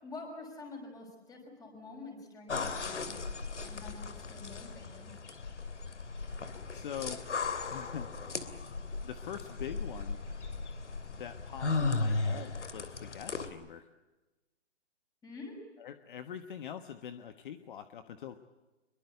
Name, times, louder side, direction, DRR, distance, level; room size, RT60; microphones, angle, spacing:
voice 1, 0.0-3.2 3.6-5.1 15.2-15.6, left 3 dB, 10° left, 2 dB, 6.0 m, -47 dB
sound 1, 2.5-13.5, left 3 dB, 85° left, 3.1 m, -36 dB
voice 2, 6.7-7.2 7.7-8.1 9.0-10.2 11.2-13.9 15.8-18.4, left 9 dB, 45° left, 10 dB, 1.4 m, -43 dB
25.0 x 23.0 x 8.2 m, 1.1 s
hypercardioid pair, 150°, 35 cm